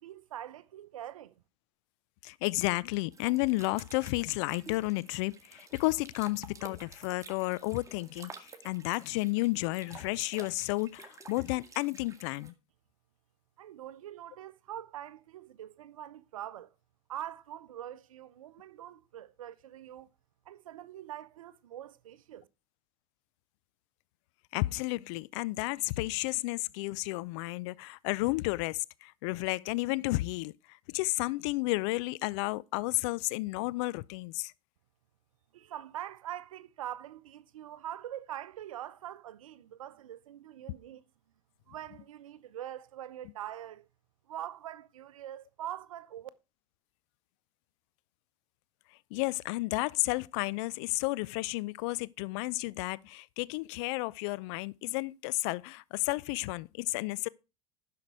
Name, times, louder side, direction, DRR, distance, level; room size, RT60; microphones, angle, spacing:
voice 1, 0.0-1.3 13.6-16.7 17.1-20.1 20.5-22.5 35.5-41.0 41.7-43.9 44.3-46.3, right 11 dB, 75° right, 0.7 m, -43 dB
voice 2, 2.2-12.5 24.5-34.5 49.1-57.3, left 22 dB, 55° left, 0.4 m, -32 dB
sound 1, 3.1-12.5, right 4 dB, 20° right, 2.0 m, -52 dB
10.5 x 6.6 x 4.7 m
hypercardioid pair, 80°, 17 cm